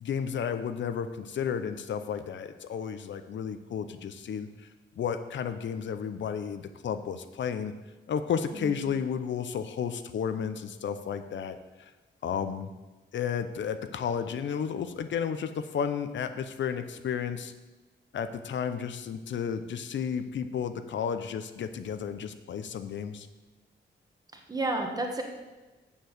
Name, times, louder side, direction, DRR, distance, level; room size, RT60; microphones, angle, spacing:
voice 1, 0.0-4.5 5.0-7.7 8.1-11.6 12.2-12.7 13.1-17.5 18.1-23.3, left 7 dB, 75° left, 9 dB, 0.6 m, -32 dB
voice 2, 24.3-25.2, right 2 dB, 20° right, 2 dB, 1.3 m, -31 dB
7.1 x 6.8 x 7.9 m, 1.2 s
wide cardioid pair, 165°, 19 cm